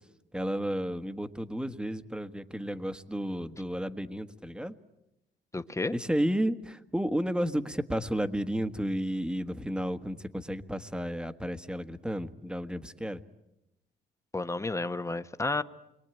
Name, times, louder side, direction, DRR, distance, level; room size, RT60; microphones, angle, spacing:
voice 1, 0.3-4.7 5.9-13.2, equal, 5° right, 10 dB, 1.4 m, -32 dB
voice 2, 5.5-6.0 14.3-15.6, left 2 dB, 15° left, 11 dB, 1.1 m, -31 dB
28.5 x 23.0 x 9.1 m, 0.90 s
cardioid pair, 90°, 20 cm